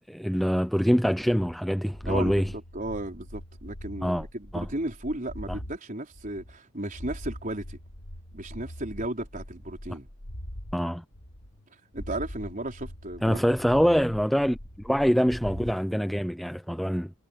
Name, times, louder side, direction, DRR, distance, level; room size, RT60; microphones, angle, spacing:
voice 1, 0.1-2.5 4.0-4.2 4.5-4.7 5.5-5.6 10.7-11.0 13.2-17.1, equal, ahead, 0.6 m, -25 dB
sound 1, 1.9-5.8 6.1-10.8 11.1-11.7 11.9-15.8, equal, 55° left, 2.6 m, -42 dB
voice 2, 2.1-7.8 8.3-10.1 11.9-13.4, right 1 dB, 35° right, 4.7 m, -35 dB
head